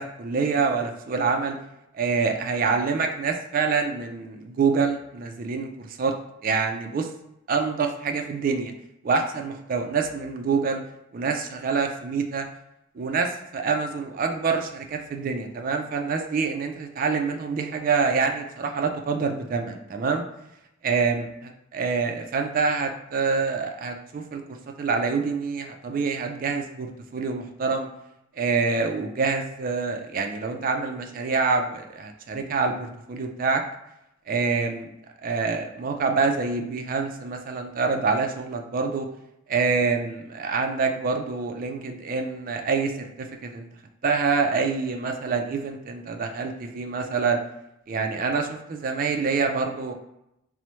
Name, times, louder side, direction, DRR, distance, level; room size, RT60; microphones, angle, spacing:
voice 1, 0.0-1.6 1.9-6.1 6.4-7.1 7.5-8.7 9.0-10.8 11.1-12.5 13.0-20.2 20.8-21.3 21.7-27.9 28.4-33.6 34.3-34.9 35.2-39.1 39.5-43.7 44.0-47.4 47.9-49.9, right 4 dB, 45° right, 4 dB, 0.3 m, -26 dB
4.2 x 2.0 x 3.0 m, 0.83 s
head